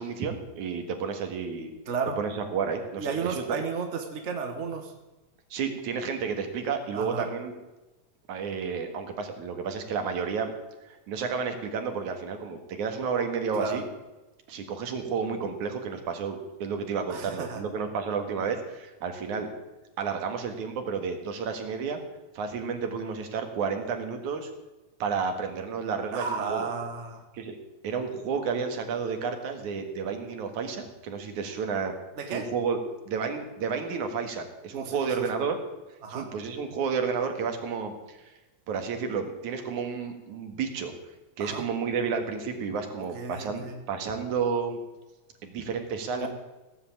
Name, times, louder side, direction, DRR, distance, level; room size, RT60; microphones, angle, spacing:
voice 1, 0.0-1.7 2.2-3.4 5.5-7.5 8.3-10.5 11.1-13.8 14.5-19.5 20.0-22.0 22.3-24.5 25.0-26.7 27.3-27.6 27.8-31.9 32.3-32.8 33.1-35.6 36.1-38.3 38.7-40.9 41.4-44.8 45.4-46.3, right 5 dB, 85° right, 5 dB, 3.2 m, -31 dB
voice 2, 1.9-2.2 3.0-4.9 6.9-7.3 13.5-13.8 17.1-17.6 26.1-27.3 32.2-32.5 34.7-35.3 36.0-36.3 41.4-41.7 43.0-43.8 46.1-46.3, right 5 dB, 50° right, 4 dB, 0.8 m, -33 dB
17.0 x 8.0 x 8.7 m, 1.1 s
omnidirectional pair, 3.3 m